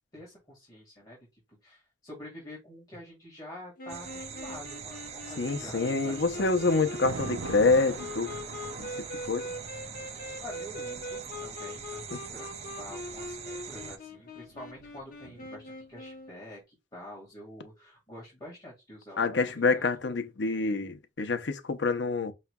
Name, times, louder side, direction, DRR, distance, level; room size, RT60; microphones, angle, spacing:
voice 1, 0.1-6.9 10.1-19.9, left 1 dB, 25° left, 2.0 m, -47 dB
sound 1, 3.8-16.4, left 1 dB, 50° left, 0.9 m, -42 dB
sound 2, 3.9-14.0, right 6 dB, 40° right, 0.5 m, -43 dB
voice 2, 5.4-8.3 8.8-8.9 9.3-9.5 19.2-22.3, left 3 dB, 90° left, 0.8 m, -27 dB
Thunder, 5.8-13.0 14.1-15.8, right 4 dB, 90° right, 0.5 m, -45 dB
5.6 x 3.2 x 2.3 m
head